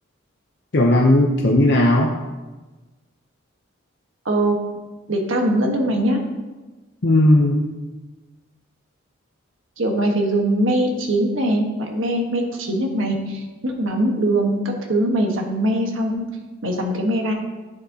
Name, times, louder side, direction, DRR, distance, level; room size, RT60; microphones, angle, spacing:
voice 1, 0.7-2.1 7.0-7.7, left 1 dB, 55° left, 0 dB, 0.7 m, -16 dB
voice 2, 5.1-6.2 9.8-14.6 14.9-16.2 16.6-17.3, right 1 dB, 70° right, 2 dB, 1.2 m, -21 dB
11.0 x 6.9 x 2.8 m, 1.2 s
head